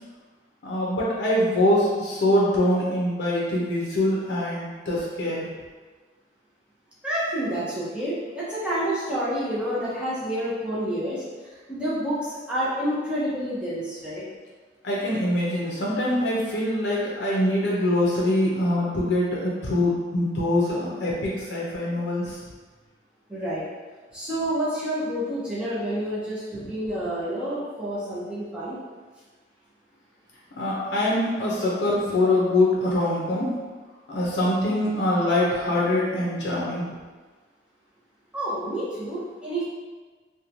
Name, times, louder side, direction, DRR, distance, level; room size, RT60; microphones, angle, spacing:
voice 1, 0.6-5.5 14.8-22.4 26.5-26.7 30.6-33.6 34.1-36.9, left 1 dB, 70° left, -5 dB, 0.5 m, -24 dB
voice 2, 7.0-11.2 11.7-14.2 23.3-23.6 24.1-28.8 38.3-39.6, right 1 dB, 5° right, -10 dB, 0.6 m, -28 dB
2.9 x 2.2 x 2.5 m, 1.4 s
head